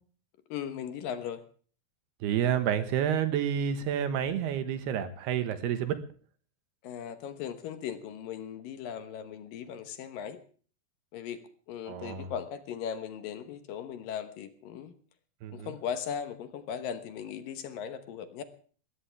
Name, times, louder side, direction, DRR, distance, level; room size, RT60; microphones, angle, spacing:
voice 1, 0.5-1.4 6.8-10.4 11.1-11.4 11.7-14.9 15.5-18.4, left 8 dB, 70° left, 10 dB, 2.6 m, -38 dB
voice 2, 2.2-6.0 11.9-12.3 15.4-15.8, right 9 dB, 80° right, 10 dB, 3.4 m, -29 dB
21.0 x 16.0 x 3.4 m, 0.43 s
omnidirectional pair, 4.6 m